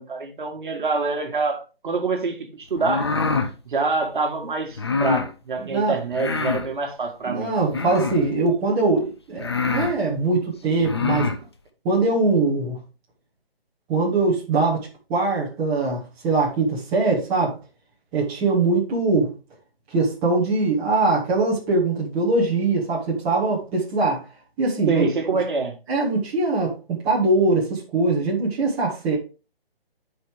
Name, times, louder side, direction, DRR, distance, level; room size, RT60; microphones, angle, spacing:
voice 1, 0.0-3.1 3.7-7.6 24.9-25.8, right 4 dB, 55° right, 1.6 m, -26 dB
sound 1, 2.8-3.5 4.8-5.3 6.1-6.7 7.7-8.3 9.0-9.1 9.4-9.9 10.7-11.4, left 4 dB, 25° left, 0.5 m, -25 dB
voice 2, 5.6-6.0 7.3-11.3 11.8-12.8 13.9-14.8 15.1-17.5 18.1-19.3 19.9-24.2 24.6-25.0 25.9-29.2, right 3 dB, 10° right, 1.2 m, -22 dB
10.5 x 4.9 x 3.5 m
hypercardioid pair, 160°, 30 cm